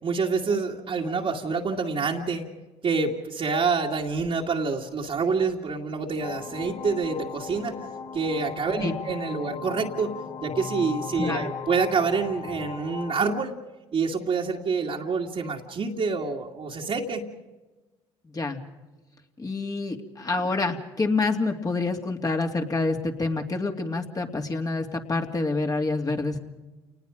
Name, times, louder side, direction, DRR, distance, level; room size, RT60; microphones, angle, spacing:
voice 1, 0.0-2.5 2.8-7.8 8.1-10.2 10.4-13.6 13.9-17.3, right 4 dB, 50° right, -3 dB, 2.3 m, -27 dB
sound 1, 6.2-13.2, left 6 dB, 55° left, 3.0 m, -37 dB
voice 2, 18.2-18.6 19.4-26.4, left 3 dB, 30° left, 3 dB, 2.8 m, -27 dB
29.0 x 19.5 x 5.1 m, 1.1 s
hypercardioid pair, 60°, 13 cm